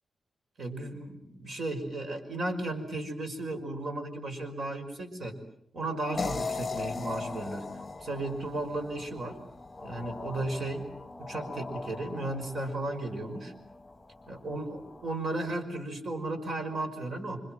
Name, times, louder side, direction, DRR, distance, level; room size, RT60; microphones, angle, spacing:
voice 1, 0.6-5.4 5.7-7.7 8.0-9.4 9.8-10.9 11.2-13.5 14.3-17.4, right 2 dB, 45° right, 6 dB, 5.5 m, -35 dB
sound 1, 6.1-15.2, left 2 dB, 10° left, 2.0 m, -44 dB
sound 2, 6.2-9.3, left 4 dB, 25° left, 1.0 m, -37 dB
28.5 x 25.5 x 7.8 m, 0.71 s
wide cardioid pair, 175°, 0 cm